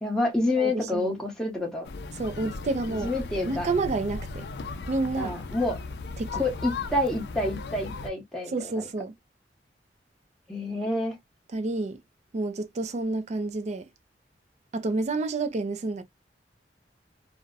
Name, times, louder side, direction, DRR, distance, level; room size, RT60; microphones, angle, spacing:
voice 1, 0.0-1.9 3.0-3.7 5.2-5.8 6.4-8.8 10.5-11.1, left 2 dB, 5° left, 0.8 m, -28 dB
voice 2, 0.5-1.2 2.2-3.1 3.4-4.5 4.9-5.4 6.2-6.4 8.5-9.1 11.5-12.0 12.3-13.9 14.7-16.0, right 3 dB, 40° right, 0.4 m, -29 dB
sound 1, 1.8-8.1, left 3 dB, 65° left, 0.4 m, -37 dB
2.5 x 2.1 x 2.4 m
head